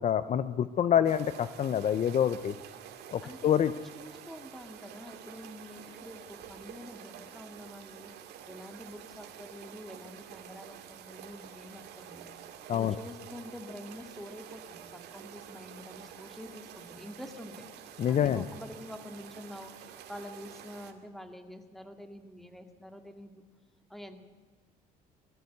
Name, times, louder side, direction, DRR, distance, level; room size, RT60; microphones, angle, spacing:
voice 1, 0.0-2.5 3.1-3.7 12.7-13.0 18.0-18.4, left 9 dB, 45° left, 13 dB, 0.7 m, -26 dB
sound 1, 1.0-20.9, right 9 dB, 80° right, 2.2 m, -49 dB
voice 2, 3.2-17.7 18.1-23.4 23.9-24.2, left 1 dB, ahead, 6 dB, 2.1 m, -47 dB
20.5 x 14.0 x 9.4 m, 1.5 s
cardioid pair, 110°, 17 cm